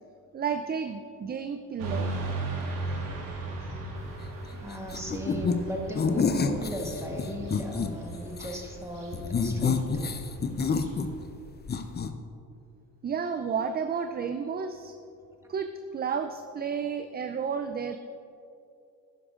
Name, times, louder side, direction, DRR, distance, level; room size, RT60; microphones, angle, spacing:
voice 1, 0.3-2.1 13.0-14.9 15.5-18.0, right 6 dB, 25° right, 8 dB, 0.4 m, -31 dB
Motorcycle / Traffic noise roadway noise, 1.8-11.2, right 2 dB, 80° right, 1.8 m, -37 dB
voice 2, 4.5-10.2, equal, 5° right, 0 dB, 1.6 m, -37 dB
sound 1, 4.9-5.6 5.9-7.9 8.3-8.6 9.1-11.4 11.6-12.1, left 5 dB, 25° left, 0.6 m, -28 dB
11.0 x 10.0 x 2.5 m, 2.6 s
hypercardioid pair, 55°, 44 cm